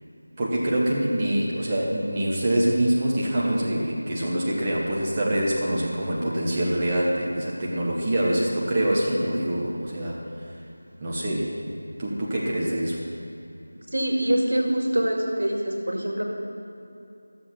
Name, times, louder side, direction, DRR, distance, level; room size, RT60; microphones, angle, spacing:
voice 1, 0.4-10.6 11.0-11.6 12.0-13.1, right 1 dB, 20° right, -5 dB, 1.2 m, -25 dB
voice 2, 13.9-16.2, right 1 dB, 75° right, 0 dB, 2.2 m, -24 dB
14.0 x 7.2 x 5.9 m, 2.8 s
figure-of-eight pair, 170°, 0 cm